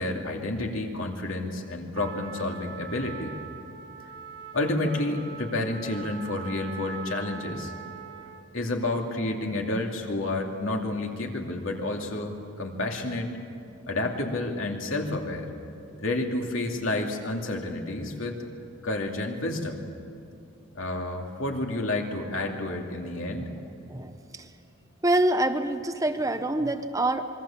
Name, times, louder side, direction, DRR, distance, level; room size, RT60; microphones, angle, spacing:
voice 1, 0.0-3.3 4.5-7.7 8.5-13.4 13.9-15.5 16.0-18.4 18.8-19.8 20.7-23.5, left 2 dB, 70° left, 2 dB, 2.6 m, -30 dB
Trumpet, 1.9-8.5, right 7 dB, 55° right, 1.7 m, -42 dB
voice 2, 23.9-24.5 25.0-27.2, right 1 dB, 15° right, 8 dB, 0.8 m, -26 dB
26.5 x 22.0 x 7.3 m, 2.6 s
head